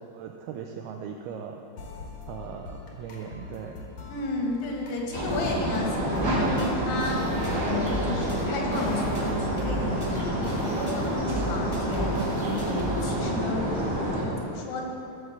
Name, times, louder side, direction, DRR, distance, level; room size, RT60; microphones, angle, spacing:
voice 1, 0.0-1.6 2.3-3.7, right 7 dB, 85° right, 3 dB, 2.2 m, -39 dB
sound 1, 1.8-12.7, left 3 dB, 55° left, 2.2 m, -43 dB
voice 2, 4.1-7.2 7.6-12.1 12.5-14.8, left 3 dB, 80° left, 0 dB, 4.0 m, -33 dB
sound 2, 5.1-14.2, right 1 dB, 35° right, 2.5 m, -28 dB
sound 3, 6.1-13.0, left 1 dB, 15° left, 1.9 m, -37 dB
15.5 x 6.3 x 7.3 m, 2.8 s
omnidirectional pair, 5.2 m